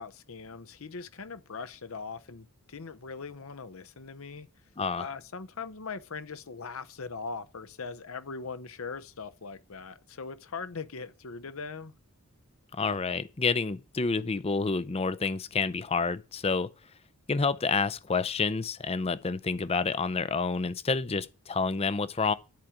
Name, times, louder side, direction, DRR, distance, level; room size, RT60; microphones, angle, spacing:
voice 1, 0.0-4.5 5.0-11.9, left 4 dB, 65° left, 0.8 m, -40 dB
voice 2, 4.8-5.1 12.7-16.7 17.3-22.3, left 4 dB, 25° left, 0.5 m, -29 dB
10.5 x 5.0 x 7.2 m
head